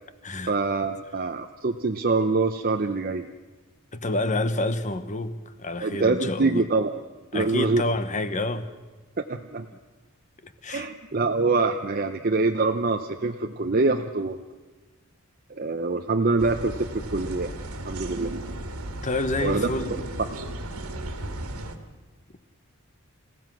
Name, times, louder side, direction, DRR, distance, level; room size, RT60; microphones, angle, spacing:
voice 1, 0.5-3.3 5.8-7.0 7.3-7.8 9.3-9.7 10.7-14.4 15.5-17.5 17.8-18.6 19.4-19.7, right 3 dB, 40° right, 0.7 m, -25 dB
voice 2, 3.9-6.6 7.3-8.7 10.4-10.9 19.0-20.0, left 2 dB, 35° left, 1.1 m, -28 dB
sound 1, 16.4-21.8, right 1 dB, 85° right, 2.1 m, -35 dB
29.0 x 16.0 x 6.1 m
head